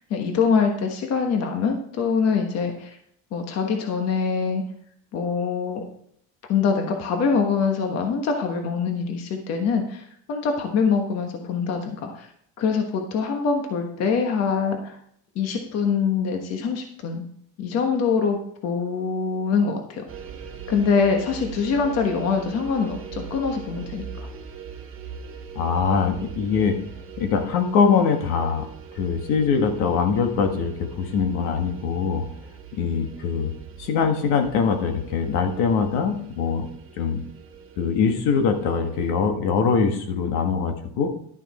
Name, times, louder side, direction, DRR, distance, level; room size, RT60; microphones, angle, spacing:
voice 1, 0.1-3.0 3.3-4.6 5.1-5.8 6.5-12.3 12.6-15.0 15.3-17.3 17.6-20.0 20.7-24.3, left 5 dB, 40° left, 4 dB, 1.3 m, -24 dB
sound 1, 20.1-39.1, right 7 dB, 35° right, 1.6 m, -41 dB
voice 2, 25.5-26.8 27.2-28.7 28.9-32.2 32.7-33.5 33.8-36.7 37.0-37.2 37.8-41.1, left 5 dB, 70° left, 5 dB, 1.7 m, -22 dB
11.5 x 6.7 x 4.3 m, 0.67 s
cardioid pair, 170°, 39 cm